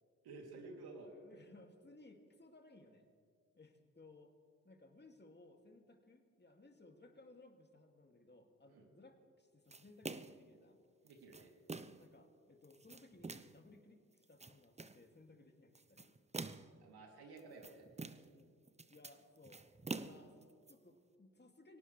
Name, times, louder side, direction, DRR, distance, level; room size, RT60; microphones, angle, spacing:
voice 1, 0.2-1.1 8.7-8.8 11.0-11.5 16.8-17.9, right 3 dB, 75° right, 1 dB, 3.1 m, -53 dB
voice 2, 1.1-3.1 3.5-4.3 4.6-10.8 12.0-16.1 18.2-18.6 18.9-21.8, left 2 dB, 25° left, 4 dB, 2.5 m, -62 dB
sound 1, 9.7-10.5 11.1-12.1 12.6-13.6 14.2-15.0 15.8-16.8 17.4-18.4 18.7-20.7, right 3 dB, 15° right, 0.8 m, -47 dB
23.5 x 18.0 x 3.3 m, 2.2 s
hypercardioid pair, 40°, 39 cm